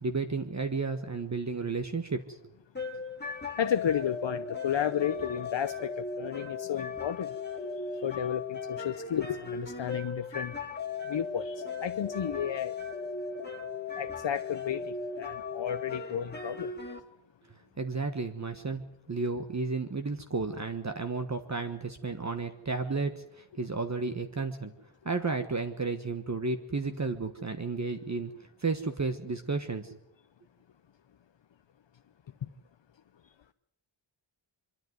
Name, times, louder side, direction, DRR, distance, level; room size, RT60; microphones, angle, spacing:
voice 1, 0.0-2.4 17.8-24.7 25.0-28.3 28.6-30.0, right 4 dB, 35° right, 1.4 m, -32 dB
sound 1, 2.7-17.0, left 4 dB, 20° left, 2.3 m, -37 dB
voice 2, 3.6-7.3 8.0-10.5 11.1-12.8 14.0-16.7, left 9 dB, 65° left, 0.8 m, -32 dB
25.0 x 13.0 x 9.4 m
wide cardioid pair, 130°, 49 cm